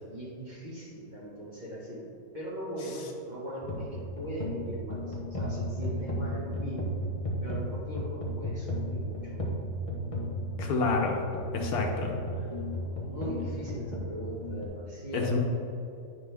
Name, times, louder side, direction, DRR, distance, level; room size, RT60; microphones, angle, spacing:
voice 1, 0.0-2.0 2.3-6.9 7.4-9.5 12.9-15.4, right 1 dB, 30° right, -6 dB, 1.6 m, -40 dB
sound 1, 3.6-14.6, equal, 25° left, 1.2 m, -34 dB
voice 2, 10.6-11.2 11.5-12.2 15.1-15.4, left 3 dB, 75° left, 1 dB, 1.3 m, -28 dB
10.0 x 5.6 x 3.5 m, 2.7 s
omnidirectional pair, 1.6 m